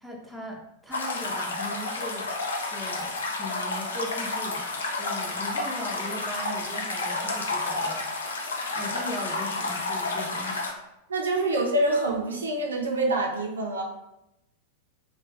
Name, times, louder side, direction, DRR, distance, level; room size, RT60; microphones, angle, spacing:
voice 1, 0.0-2.3 2.7-8.1 8.7-10.6, left 1 dB, ahead, -2 dB, 0.7 m, -39 dB
sound 1, 0.9-10.7, left 3 dB, 70° left, 0.5 m, -30 dB
voice 2, 11.1-13.8, right 2 dB, 70° right, 0 dB, 0.5 m, -26 dB
3.1 x 2.3 x 3.3 m, 0.88 s
figure-of-eight pair, 90°, 0 cm